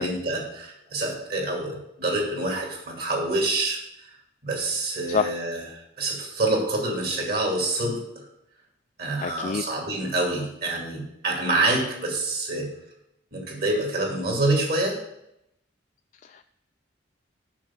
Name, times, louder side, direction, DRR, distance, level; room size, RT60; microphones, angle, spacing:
voice 1, 0.0-3.8 4.4-8.2 9.0-12.7 13.3-15.0, right 2 dB, 50° right, 0 dB, 2.7 m, -27 dB
voice 2, 9.2-9.6 16.2-16.4, left 5 dB, 40° left, 7 dB, 0.3 m, -27 dB
7.2 x 6.0 x 7.3 m, 0.80 s
head